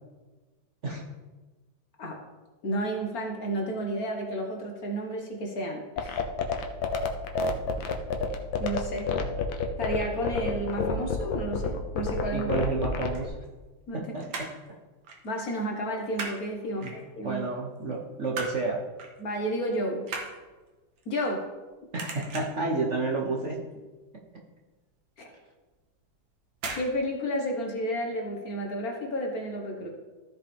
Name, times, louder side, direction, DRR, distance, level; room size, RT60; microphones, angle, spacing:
voice 1, 2.6-6.2 8.6-9.1 9.8-12.5 13.9-14.0 15.2-17.4 19.2-20.1 21.0-21.4 25.2-25.3 26.7-29.9, equal, 55° left, 1 dB, 1.6 m, -31 dB
sound 1, 6.0-13.3, left 5 dB, 90° left, 1.6 m, -28 dB
voice 2, 12.3-13.3 13.9-14.8 16.7-16.9 17.2-18.8 21.9-23.6, right 3 dB, 50° right, -1 dB, 1.0 m, -31 dB
sound 2, 12.9-13.9 14.2-14.7 15.0-15.3 15.5-16.4 16.8-17.4 17.8-18.6 19.0-19.2 19.5-21.6 21.9-22.7 23.1-23.5 23.7-23.8 24.2-24.3 24.7-24.8 25.7-25.9 26.5-26.9 27.2-27.3, right 3 dB, 80° right, 2.0 m, -37 dB
14.5 x 5.2 x 3.4 m, 1.2 s
omnidirectional pair, 2.1 m